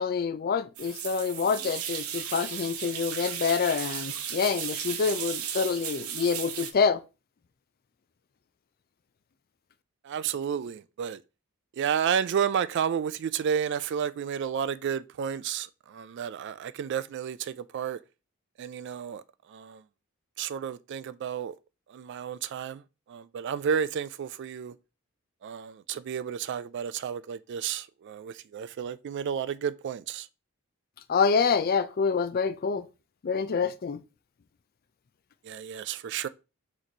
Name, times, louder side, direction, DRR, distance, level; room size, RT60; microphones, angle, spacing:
voice 1, 0.0-7.0 31.1-32.8 33.2-34.0, left 5 dB, 45° left, 0.4 m, -27 dB
sound 1, 0.7-6.7, right 9 dB, 85° right, 0.7 m, -35 dB
voice 2, 10.1-11.2 11.8-15.7 15.9-18.0 18.6-19.2 19.5-19.8 20.4-21.5 21.9-22.8 23.1-24.7 25.4-30.2 35.5-36.3, right 8 dB, 55° right, 0.3 m, -31 dB
4.1 x 3.1 x 3.9 m
head